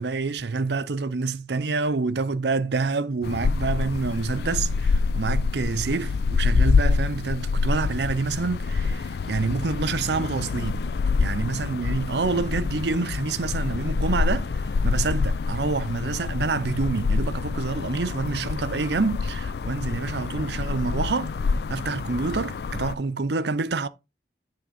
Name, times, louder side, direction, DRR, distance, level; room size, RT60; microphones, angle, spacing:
voice 1, 0.0-10.9 11.2-14.5 14.8-21.3 21.7-23.9, right 4 dB, 75° right, 0.6 m, -27 dB
sound 1, 3.2-23.0, left 4 dB, 70° left, 0.4 m, -26 dB
9.7 x 3.6 x 5.8 m
head